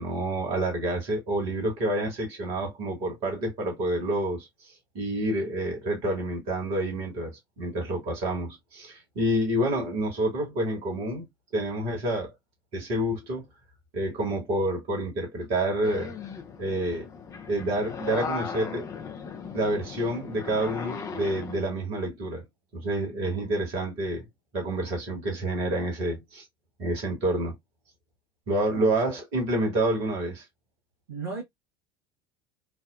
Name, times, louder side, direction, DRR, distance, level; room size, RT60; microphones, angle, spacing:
voice 1, 0.0-4.5 4.9-11.3 11.5-12.3 12.7-13.4 13.9-16.1 16.6-17.1 17.5-18.9 19.5-22.4 22.7-24.2 24.5-26.4 26.8-27.5 28.5-30.4, right 1 dB, 55° right, 1.6 m, -28 dB
sound 1, 15.8-21.6, left 5 dB, 25° left, 0.5 m, -37 dB
voice 2, 31.1-31.4, right 4 dB, 80° right, 1.0 m, -35 dB
3.3 x 2.2 x 2.3 m
figure-of-eight pair, 70°, 12 cm